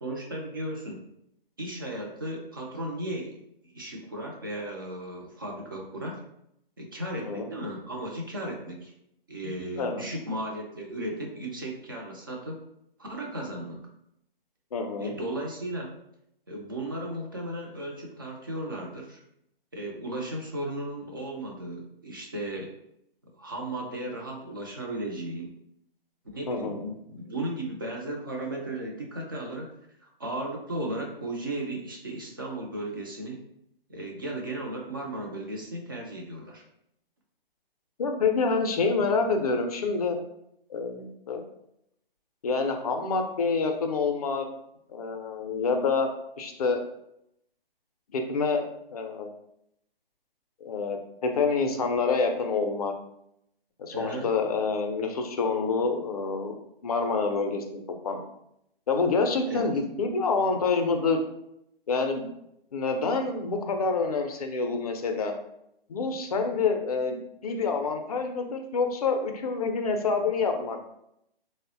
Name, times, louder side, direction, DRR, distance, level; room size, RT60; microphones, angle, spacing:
voice 1, 0.0-1.0 1.6-3.4 3.6-6.2 6.8-8.9 9.3-12.6 13.0-13.8 15.0-15.9 16.5-19.2 19.7-22.7 23.3-25.5 26.3-29.7 30.0-33.4 33.9-36.6 53.9-54.3 59.5-59.7, right 1 dB, 25° right, 0 dB, 0.3 m, -35 dB
voice 2, 7.1-7.5 9.8-10.0 14.7-15.1 26.5-26.9 38.0-40.2 40.7-41.4 42.4-44.5 44.9-46.1 46.4-46.8 48.1-48.6 48.9-49.3 50.6-52.9 53.8-56.6 56.8-58.2 58.9-61.2 61.9-62.3 62.7-65.3 65.9-70.9, left 4 dB, 40° left, 5 dB, 0.4 m, -27 dB
3.6 x 2.0 x 2.6 m, 0.78 s
figure-of-eight pair, 135°, 29 cm